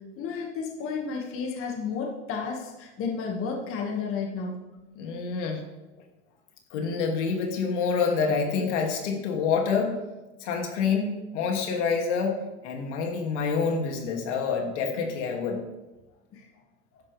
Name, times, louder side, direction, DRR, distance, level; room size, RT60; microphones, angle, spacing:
voice 1, 0.2-4.6 16.3-16.5, left 5 dB, 35° left, 1 dB, 1.9 m, -32 dB
voice 2, 5.0-5.6 6.7-10.0 10.4-12.4 12.6-15.6, left 5 dB, 70° left, 2 dB, 2.6 m, -27 dB
13.0 x 11.0 x 3.4 m, 1.1 s
supercardioid pair, 125°, 36 cm